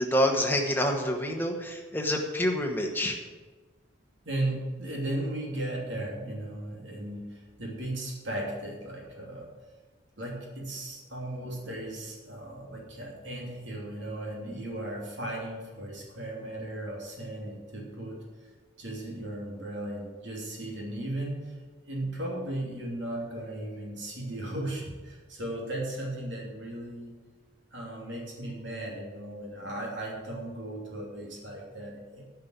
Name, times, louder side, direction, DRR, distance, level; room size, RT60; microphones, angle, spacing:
voice 1, 0.0-3.2, equal, 10° left, 2 dB, 1.1 m, -27 dB
voice 2, 4.2-9.5 10.2-18.2 18.8-21.5 21.9-27.1 27.7-32.3, right 1 dB, 70° right, -2 dB, 2.9 m, -36 dB
10.5 x 5.9 x 8.0 m, 1.4 s
head